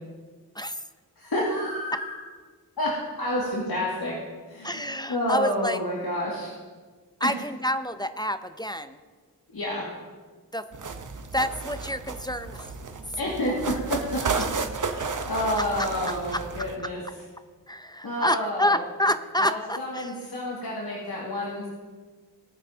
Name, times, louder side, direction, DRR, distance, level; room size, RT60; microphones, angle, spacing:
voice 1, 1.2-2.1 2.8-2.9 3.2-4.1 4.5-6.5 7.2-7.3 9.5-9.8 13.2-14.0 14.8-17.0 18.0-18.8 19.4-21.7, left 1 dB, 70° left, -5 dB, 2.2 m, -29 dB
voice 2, 4.6-5.8 7.2-9.0 10.5-10.6 11.3-12.7 15.6-16.4 17.7-20.1, equal, 10° left, 10 dB, 0.5 m, -28 dB
sound 1, 10.7-16.8, right 4 dB, 50° right, 0.9 m, -32 dB
19.5 x 9.4 x 2.8 m, 1.5 s
wide cardioid pair, 65°, 38 cm